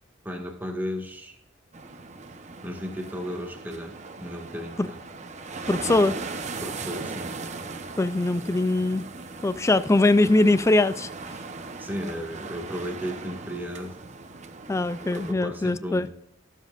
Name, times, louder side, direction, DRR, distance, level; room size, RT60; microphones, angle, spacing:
voice 1, 0.3-1.4 2.6-5.0 6.6-7.3 11.8-14.0 15.1-16.1, equal, 10° right, 1.7 m, -34 dB
sound 1, 1.7-15.3, right 3 dB, 35° right, 0.9 m, -38 dB
voice 2, 5.7-6.2 8.0-9.0 9.4-11.1 14.7-16.1, left 2 dB, 15° left, 0.3 m, -22 dB
21.5 x 7.5 x 2.5 m
head